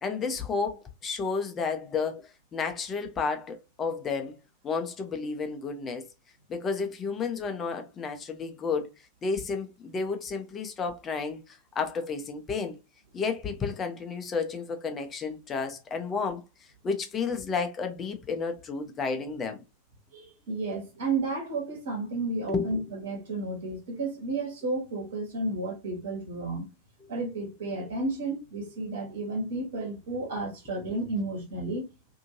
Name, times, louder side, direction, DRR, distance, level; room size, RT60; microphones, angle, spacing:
voice 1, 0.0-2.2 2.5-4.4 4.6-6.1 6.5-8.9 9.2-12.8 13.1-19.6 22.5-22.7, left 5 dB, 25° left, 0.7 m, -31 dB
voice 2, 20.1-26.6 27.1-31.9, right 2 dB, 60° right, 1.4 m, -32 dB
2.7 x 2.7 x 2.7 m
figure-of-eight pair, 90°, 0 cm